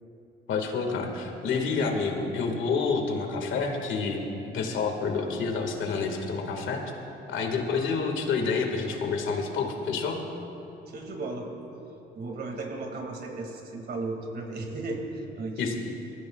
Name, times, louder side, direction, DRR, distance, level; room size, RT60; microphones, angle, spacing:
voice 1, 0.5-6.8 7.3-10.2 15.6-15.7, left 4 dB, 75° left, 3 dB, 1.9 m, -28 dB
voice 2, 10.9-11.5 12.2-15.8, right 2 dB, 55° right, 2 dB, 2.3 m, -35 dB
22.0 x 15.0 x 2.4 m, 2.9 s
cardioid pair, 90°, 20 cm